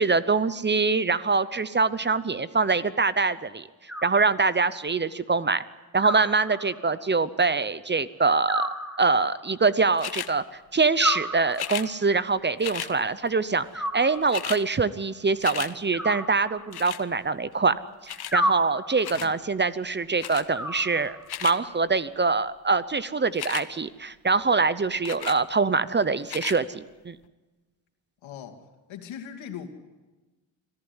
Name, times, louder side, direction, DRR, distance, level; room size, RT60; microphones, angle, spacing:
voice 1, 0.0-3.7 4.0-5.6 5.9-8.7 9.0-10.4 10.7-27.2, right 4 dB, 25° right, 16 dB, 0.8 m, -24 dB
Animal, 3.9-4.8 6.0-7.0 8.5-9.6 11.0-12.0 13.7-14.6 15.9-17.0 18.3-19.2 20.5-21.4, equal, ahead, 2.2 m, -32 dB
sound 1, 10.0-10.3 11.5-11.9 12.6-12.9 13.9-14.0 14.1-14.6 15.0-15.7 16.7-17.0 18.1-18.4 19.0-19.3 20.2-20.5 21.1-21.6 23.3-23.7 25.0-25.4 26.2-26.6 27.2-27.3, left 10 dB, 55° left, 1.2 m, -34 dB
voice 2, 28.2-28.6 28.9-29.7, left 8 dB, 80° left, 6 dB, 2.7 m, -39 dB
25.5 x 14.5 x 9.8 m, 1.2 s
cardioid pair, 90°, 46 cm